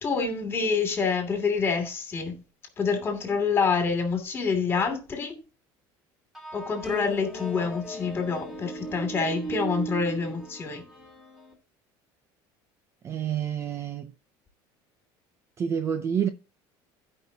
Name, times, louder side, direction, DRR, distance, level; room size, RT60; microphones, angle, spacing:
voice 1, 0.0-2.4 2.8-5.4 6.5-10.8, left 5 dB, 25° left, 2.7 m, -27 dB
sound 1, 6.3-11.5, right 2 dB, 5° right, 2.3 m, -37 dB
voice 2, 13.0-14.1 15.6-16.3, right 8 dB, 30° right, 0.5 m, -28 dB
15.5 x 5.4 x 2.8 m
cardioid pair, 155°, 10 cm